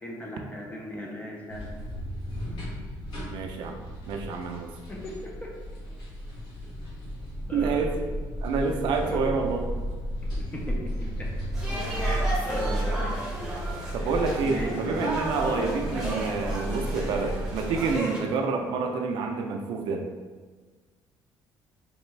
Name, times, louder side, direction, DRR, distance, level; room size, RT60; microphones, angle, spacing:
voice 1, 0.0-1.6 4.9-5.5 7.5-8.0 9.0-9.3 10.2-11.3 12.0-13.3 14.0-14.1 14.4-15.1 15.4-15.7, left 1 dB, 15° left, -1 dB, 0.7 m, -37 dB
sound 1, 1.5-18.0, equal, 65° left, 1.4 m, -33 dB
voice 2, 3.3-3.8 4.1-4.7 7.5-8.1 8.4-9.6 13.9-20.0, right 4 dB, 70° right, 3 dB, 0.5 m, -28 dB
sound 2, 11.5-18.2, right 1 dB, 5° right, 1.0 m, -34 dB
3.6 x 3.3 x 3.2 m, 1.4 s
cardioid pair, 140°, 8 cm